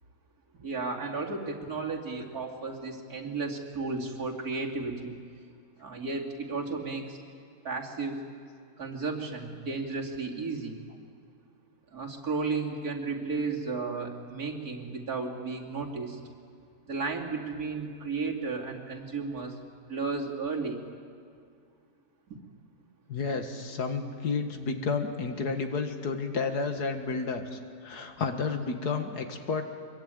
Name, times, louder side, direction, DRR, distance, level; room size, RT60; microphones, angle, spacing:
voice 1, 0.6-5.2 5.8-7.2 7.6-8.2 8.8-10.8 11.9-16.2 16.9-19.5 19.9-20.8, right 4 dB, 70° right, -1 dB, 3.1 m, -33 dB
voice 2, 23.1-29.6, left 4 dB, 90° left, 6 dB, 2.3 m, -31 dB
24.0 x 22.5 x 9.1 m, 2.2 s
omnidirectional pair, 1.6 m